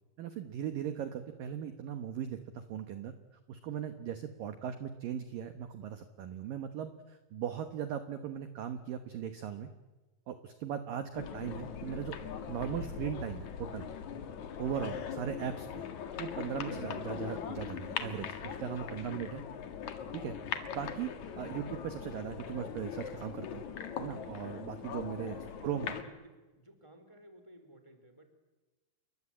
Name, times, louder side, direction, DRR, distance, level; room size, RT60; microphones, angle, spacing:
voice 1, 0.2-3.1 3.5-9.7 10.3-12.2 12.5-13.9 14.6-15.8 16.2-19.4 20.1-21.1 21.4-23.6 24.0-25.9, right 9 dB, 70° right, 9 dB, 2.2 m, -38 dB
sound 1, 11.1-26.0, left 8 dB, 55° left, 2.2 m, -41 dB
voice 2, 18.7-19.3 25.2-28.3, equal, 10° left, 7 dB, 2.4 m, -55 dB
29.5 x 22.5 x 8.7 m, 1.2 s
omnidirectional pair, 5.6 m